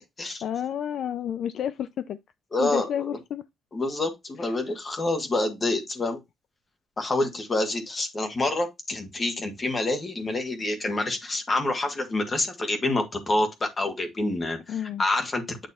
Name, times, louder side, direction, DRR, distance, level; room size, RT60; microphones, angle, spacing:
voice 1, 0.4-2.2 2.6-3.4 14.7-15.0, left 9 dB, 60° left, 0.4 m, -30 dB
voice 2, 2.5-3.2 3.7-6.2 7.0-15.7, left 2 dB, 25° left, 1.5 m, -27 dB
9.0 x 3.1 x 4.1 m
cardioid pair, 170°, 0 cm